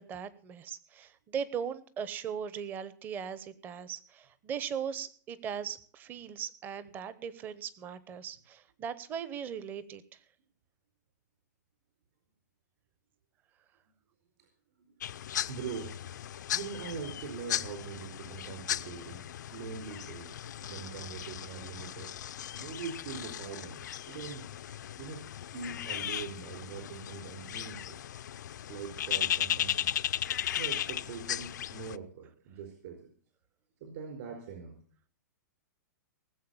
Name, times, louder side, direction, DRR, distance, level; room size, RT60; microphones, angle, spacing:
voice 1, 0.0-10.2, right 7 dB, 20° right, 16 dB, 0.9 m, -39 dB
sound 1, 15.0-32.0, left 11 dB, 75° left, 0.6 m, -36 dB
voice 2, 15.1-22.1 22.6-23.8 24.1-24.5 25.0-25.3 25.5-28.0 28.6-30.0 30.6-33.1 33.8-34.8, right 6 dB, 50° right, 2 dB, 4.4 m, -43 dB
19.0 x 7.6 x 7.0 m, 0.44 s
hypercardioid pair, 160°, 10 cm